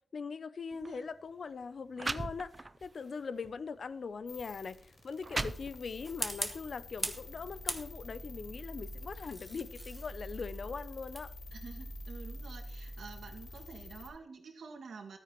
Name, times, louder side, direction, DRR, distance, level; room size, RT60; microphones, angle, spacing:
voice 1, 0.1-2.5 2.8-4.8 5.0-11.3, left 5 dB, 55° left, 0.5 m, -41 dB
sound 1, 0.7-0.9 1.6-1.7 2.0-2.9 3.4-3.6 4.4-4.5 5.0-6.1, right 2 dB, 20° right, 0.5 m, -38 dB
voice 2, 0.7-1.1 11.5-15.2, right 5 dB, 90° right, 2.0 m, -49 dB
sound 2, 4.3-14.1, left 1 dB, 85° left, 4.5 m, -47 dB
sound 3, 6.0-7.3 7.7-8.3 9.0-13.8, right 1 dB, 5° right, 1.1 m, -42 dB
14.0 x 13.0 x 3.1 m
wide cardioid pair, 175°, 0 cm